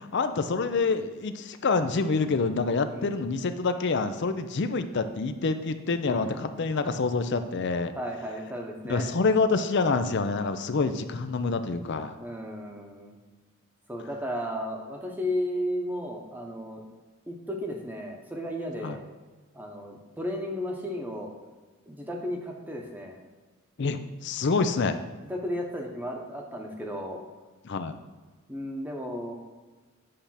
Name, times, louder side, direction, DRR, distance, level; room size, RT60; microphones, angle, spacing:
voice 1, 0.1-7.9 8.9-12.1 18.8-19.0 23.8-25.0 27.6-28.0, left 4 dB, 55° left, 9 dB, 0.5 m, -27 dB
voice 2, 2.8-3.2 6.1-6.2 8.0-9.1 12.2-13.2 13.9-16.8 17.3-19.0 19.5-21.3 21.9-23.2 25.3-27.2 28.5-29.3, equal, 10° right, 1 dB, 0.9 m, -34 dB
8.5 x 3.4 x 5.7 m, 1.3 s
head